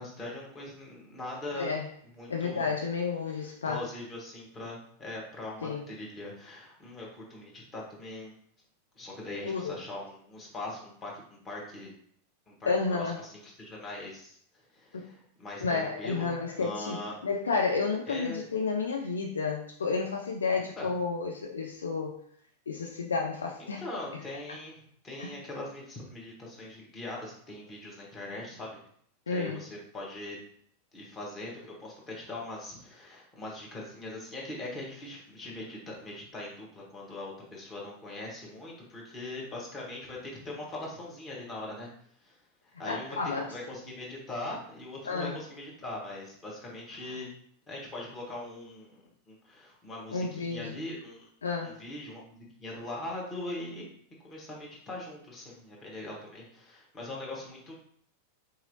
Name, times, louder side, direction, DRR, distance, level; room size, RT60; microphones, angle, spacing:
voice 1, 0.0-1.7 2.2-2.7 3.4-8.4 8.9-11.9 12.5-16.3 16.6-17.2 18.1-18.4 20.5-20.9 23.8-28.8 29.3-30.4 30.9-41.9 42.2-47.3 47.7-51.3 51.6-53.8 54.2-57.7, left 2 dB, 20° left, -3 dB, 1.1 m, -41 dB
voice 2, 1.6-1.9 2.3-3.8 5.6-5.8 9.4-9.8 12.7-13.2 14.9-15.1 15.6-22.2 22.7-23.8 25.2-25.3 29.3-29.6 42.9-43.5 45.1-45.4 50.1-50.8 51.4-51.7, left 4 dB, 70° left, 1 dB, 0.3 m, -31 dB
3.8 x 2.9 x 2.6 m, 0.63 s
figure-of-eight pair, 90°, 0 cm